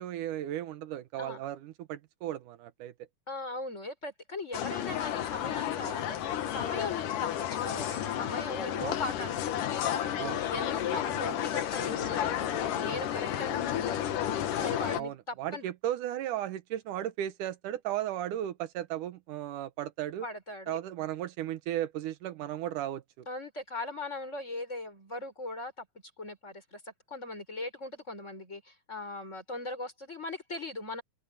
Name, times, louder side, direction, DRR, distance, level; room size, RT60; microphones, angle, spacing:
voice 1, 0.0-2.9 8.8-9.0 10.2-10.4 14.9-20.3 20.7-23.3, right 12 dB, 80° right, 2.5 m, -35 dB
voice 2, 3.3-10.2 10.5-14.2 14.6-15.7 20.2-20.8 23.3-25.9 26.2-31.0, left 2 dB, 20° left, 5.0 m, -39 dB
sound 1, 4.5-15.0, left 10 dB, 90° left, 3.0 m, -32 dB
open air
omnidirectional pair, 3.6 m